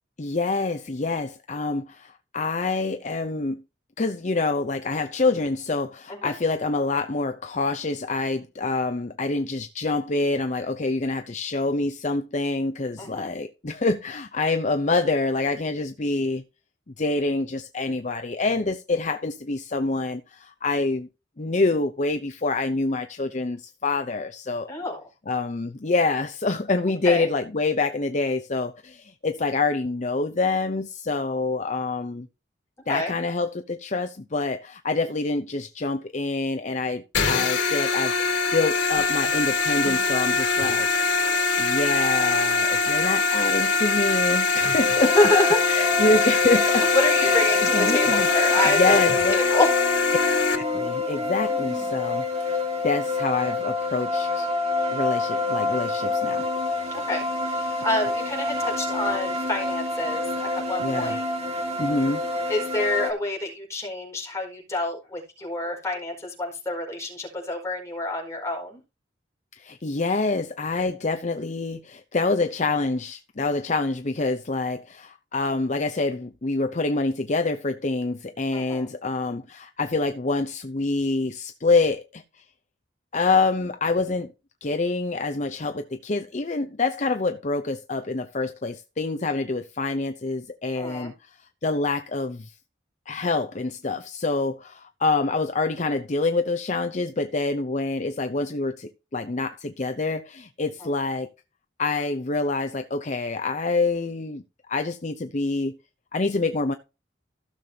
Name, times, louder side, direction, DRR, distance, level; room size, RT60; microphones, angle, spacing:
voice 1, 0.2-3.6 4.0-16.4 17.0-21.1 21.4-24.7 25.3-32.3 32.9-38.1 38.5-40.9 41.6-45.1 45.7-46.9 47.2-49.4 50.5-52.2 52.8-54.5 54.9-56.4 60.8-61.2 61.8-62.2 69.6-82.4 83.1-84.3 84.6-91.4 91.6-92.5 93.1-101.3 101.8-104.4 104.7-105.8 106.1-106.7, left 3 dB, 40° left, 0.7 m, -26 dB
voice 2, 13.0-13.3 24.7-25.0 27.0-27.3 32.9-33.1 45.0-45.6 46.7-49.0 49.3-49.7 56.9-61.2 62.5-68.8 78.5-78.9 90.8-91.1, left 2 dB, 15° left, 4.6 m, -27 dB
sound 1, 37.1-50.6, left 4 dB, 80° left, 3.3 m, -23 dB
sound 2, 44.8-63.1, left 3 dB, 35° right, 1.9 m, -27 dB
sound 3, 47.6-51.9, equal, 10° right, 1.0 m, -37 dB
16.0 x 6.9 x 2.8 m
head